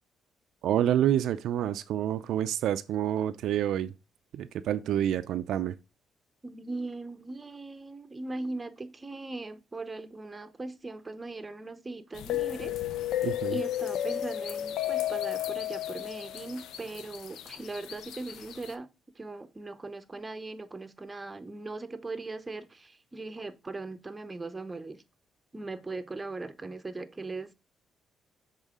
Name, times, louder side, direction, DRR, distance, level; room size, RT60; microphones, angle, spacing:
voice 1, 0.6-3.9 4.3-5.8 13.2-13.6, right 11 dB, 80° right, 0.3 m, -28 dB
voice 2, 6.4-12.8 13.2-18.9 19.2-25.0 25.5-27.5, right 3 dB, 20° right, 0.7 m, -39 dB
sound 1, 12.1-18.7, left 12 dB, 80° left, 0.5 m, -33 dB
7.2 x 3.7 x 3.5 m
cardioid pair, 90°, 0 cm